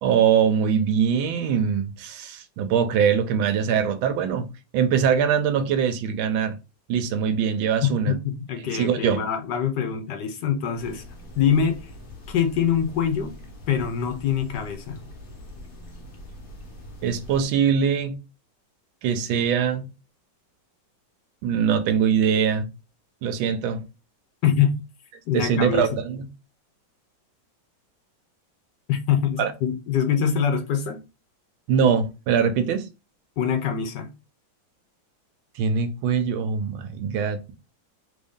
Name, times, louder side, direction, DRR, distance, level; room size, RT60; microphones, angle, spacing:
voice 1, 0.0-6.6 6.9-8.1 8.6-9.2 17.0-18.2 19.0-19.9 21.4-22.7 23.2-23.8 25.3-26.2 29.4-29.5 31.7-32.9 35.5-37.5, right 7 dB, 85° right, 1.4 m, -22 dB
voice 2, 7.8-11.0 11.4-11.9 12.3-13.3 13.7-15.1 24.4-24.7 25.3-25.9 28.9-31.0 33.4-34.1, left 8 dB, 70° left, 1.1 m, -24 dB
sound 1, 10.7-17.4, left 1 dB, 40° left, 0.8 m, -43 dB
3.4 x 2.6 x 3.5 m
omnidirectional pair, 2.1 m